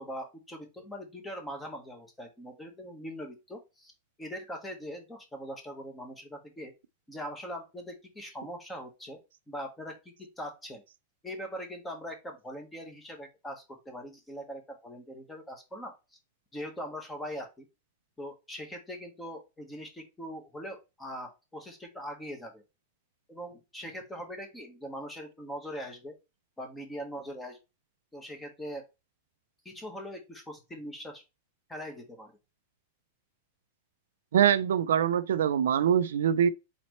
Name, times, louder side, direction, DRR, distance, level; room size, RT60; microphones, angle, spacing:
voice 1, 0.0-3.9 4.2-6.7 7.1-9.2 9.5-10.8 11.2-15.9 16.5-17.6 18.2-22.6 23.3-26.2 26.6-27.6 28.1-28.8 29.6-31.2 31.7-32.3, equal, 10° left, 1.3 m, -41 dB
voice 2, 34.3-36.5, right 9 dB, 90° right, 0.4 m, -24 dB
4.2 x 4.1 x 3.1 m
supercardioid pair, 145°, 0 cm